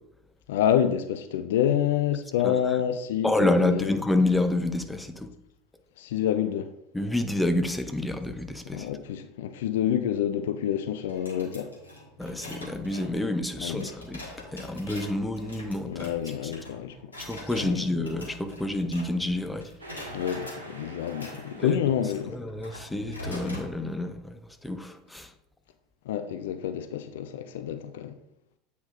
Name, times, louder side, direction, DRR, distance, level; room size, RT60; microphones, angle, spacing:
voice 1, 0.5-4.0 6.0-6.7 8.7-11.7 13.6-13.9 15.9-17.1 17.5-17.9 20.1-22.4 26.1-28.1, left 10 dB, 65° left, 0.4 m, -28 dB
voice 2, 3.2-5.3 6.9-8.9 12.2-14.2 14.5-16.1 17.2-19.7 21.6-21.8 22.3-25.3, left 1 dB, 5° left, 0.6 m, -28 dB
sound 1, 11.1-19.3 19.6-20.6 21.1-23.7, left 1 dB, 80° left, 1.4 m, -44 dB
sound 2, 19.8-22.4, right 2 dB, 80° right, 1.0 m, -44 dB
8.1 x 5.1 x 2.5 m
figure-of-eight pair, 75°, 0 cm